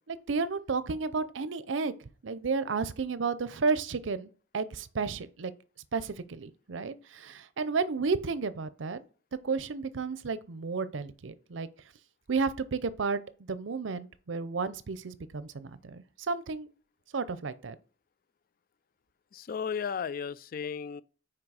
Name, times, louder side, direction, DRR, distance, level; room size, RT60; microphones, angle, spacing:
voice 1, 0.1-1.9 2.2-5.5 5.9-9.0 9.4-11.7 12.3-13.2 13.5-16.7 17.1-17.7, right 4 dB, 85° right, 0.6 m, -32 dB
voice 2, 19.3-21.0, left 6 dB, 50° left, 0.3 m, -34 dB
6.0 x 4.6 x 4.8 m
head